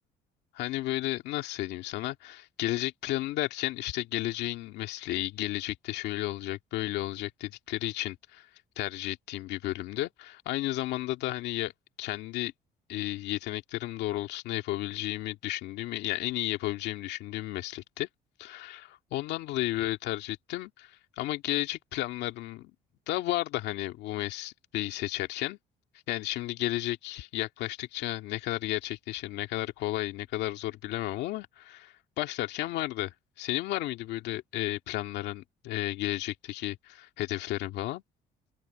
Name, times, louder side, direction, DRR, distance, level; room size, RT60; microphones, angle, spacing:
voice 1, 0.5-8.5 8.8-11.7 12.0-12.5 12.9-18.1 18.4-22.7 23.1-25.6 26.1-38.0, left 16 dB, 85° left, 2.2 m, -33 dB
cardioid pair, 110°, 17 cm